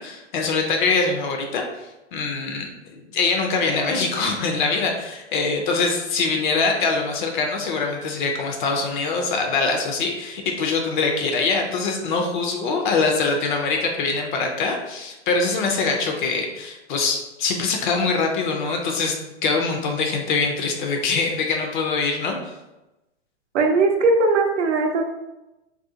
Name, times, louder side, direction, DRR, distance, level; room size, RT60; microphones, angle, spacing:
voice 1, 0.0-1.6 2.1-19.1 19.4-22.3, left 4 dB, 45° left, 2 dB, 0.5 m, -23 dB
voice 2, 23.5-25.0, right 3 dB, 80° right, 3 dB, 0.6 m, -19 dB
2.4 x 2.3 x 2.7 m, 0.97 s
hypercardioid pair, 120°, 35 cm